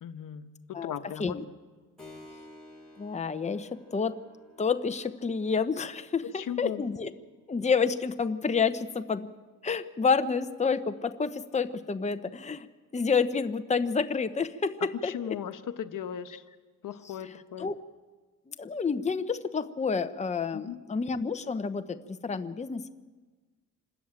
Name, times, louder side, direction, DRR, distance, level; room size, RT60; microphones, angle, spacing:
voice 1, 0.0-0.5 0.8-1.4 6.2-6.8 15.0-16.4 16.8-17.7 20.5-20.8, left 9 dB, 75° left, 9 dB, 1.1 m, -37 dB
Keyboard (musical), 2.0-10.2, left 1 dB, ahead, 7.4 m, -55 dB
voice 2, 3.0-4.1 4.6-7.1 7.5-9.3 9.6-12.7 12.9-15.4 17.2-17.3 17.6-17.7 18.5-22.0 22.2-22.9, left 5 dB, 20° left, 9 dB, 0.8 m, -29 dB
26.0 x 13.5 x 8.9 m, 1.4 s
cardioid pair, 105°, 33 cm